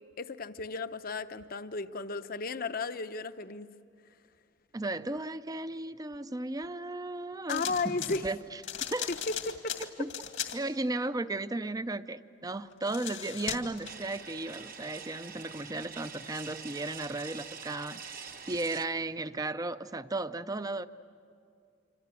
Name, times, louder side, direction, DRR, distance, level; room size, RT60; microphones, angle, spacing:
voice 1, 0.2-3.7 7.5-8.3 9.1-9.2 9.5-9.8, left 4 dB, 50° left, 11 dB, 0.8 m, -34 dB
voice 2, 4.7-8.6 8.9-9.1 10.0-10.1 10.5-20.9, right 2 dB, 20° right, 13 dB, 0.6 m, -35 dB
sound 1, 7.5-8.2 8.6-10.6 12.7-13.9, left 9 dB, 85° left, 2.2 m, -37 dB
sound 2, 13.8-18.9, right 6 dB, 50° right, 1.3 m, -45 dB
27.0 x 26.0 x 8.4 m, 2.3 s
head